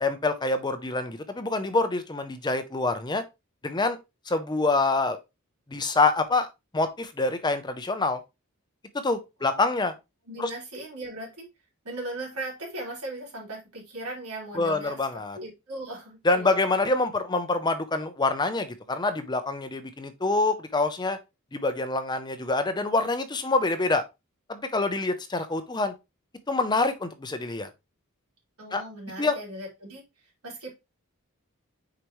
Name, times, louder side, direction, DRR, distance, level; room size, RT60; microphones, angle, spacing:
voice 1, 0.0-3.2 3.6-4.0 4.3-5.2 5.7-6.5 6.7-8.2 9.0-9.9 10.4-10.5 14.5-15.4 16.2-21.2 21.5-24.0 24.5-25.9 26.5-27.7 28.7-28.8 29.2-29.4, left 3 dB, 20° left, 0.6 m, -26 dB
voice 2, 10.3-11.5 11.8-15.0 15.4-16.6 28.6-30.0 30.4-30.7, right 1 dB, 90° right, 3.8 m, -38 dB
6.2 x 4.9 x 3.1 m
head